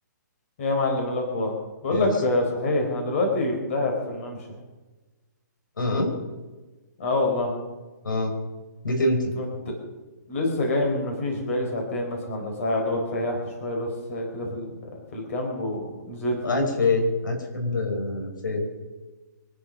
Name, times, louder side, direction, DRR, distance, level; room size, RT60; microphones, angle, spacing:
voice 1, 0.6-1.6 1.8-4.5 7.0-7.5 9.4-9.7 10.3-16.4, left 2 dB, 40° left, 1 dB, 4.4 m, -26 dB
voice 2, 5.8-6.2 8.0-8.4 8.8-9.4 16.4-18.7, left 2 dB, 85° left, 3 dB, 5.5 m, -25 dB
24.0 x 11.0 x 5.4 m, 1.2 s
hypercardioid pair, 165°, 10 cm